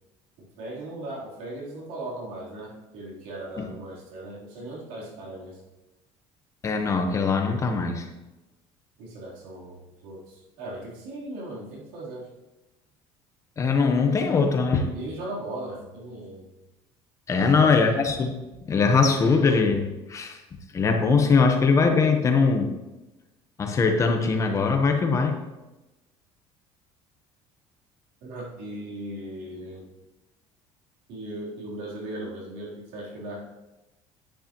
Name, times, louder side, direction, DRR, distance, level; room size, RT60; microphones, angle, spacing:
voice 1, 0.6-5.6 9.0-12.3 14.9-16.5 17.3-18.0 28.2-29.9 31.1-33.5, right 1 dB, 85° right, -5 dB, 3.6 m, -37 dB
voice 2, 6.6-8.1 13.6-14.9 17.3-18.3 18.7-20.4 20.7-22.7 23.6-25.4, left 4 dB, 25° left, 5 dB, 1.1 m, -21 dB
10.0 x 9.6 x 3.0 m, 1.0 s
cardioid pair, 145°, 11 cm